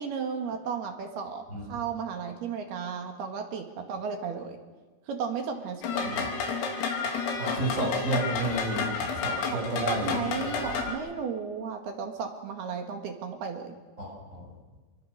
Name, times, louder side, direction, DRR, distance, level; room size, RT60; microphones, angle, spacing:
voice 1, 0.0-4.6 5.1-6.1 9.8-13.7, right 6 dB, 60° right, 4 dB, 3.4 m, -34 dB
sound 1, 5.8-10.9, left 5 dB, 85° left, 5.6 m, -30 dB
voice 2, 7.4-8.9 9.2-10.4 14.0-14.5, right 1 dB, 15° right, 1 dB, 6.0 m, -31 dB
28.0 x 22.5 x 6.7 m, 1.3 s
omnidirectional pair, 6.0 m